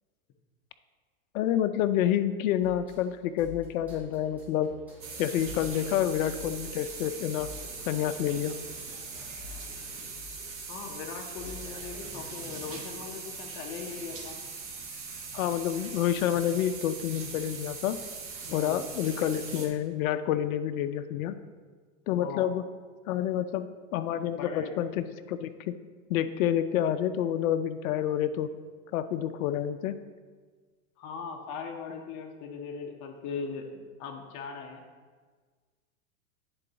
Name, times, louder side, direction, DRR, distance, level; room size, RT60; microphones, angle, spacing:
voice 1, 1.3-4.7 5.2-7.5 7.9-8.5 15.3-18.0 18.5-21.3 22.1-22.6 23.1-23.7 23.9-25.7 26.1-28.5 28.9-30.0, left 10 dB, 75° left, 10 dB, 0.5 m, -28 dB
sound 1, 2.6-12.1, left 3 dB, 5° right, 2.0 m, -49 dB
sound 2, 5.0-19.7, right 4 dB, 30° right, 1.5 m, -41 dB
voice 2, 10.7-14.4 18.5-18.8 22.2-22.4 24.4-24.7 31.0-34.8, left 5 dB, 45° left, 2 dB, 0.8 m, -39 dB
9.8 x 3.9 x 3.9 m, 1.5 s
hypercardioid pair, 115°, 42 cm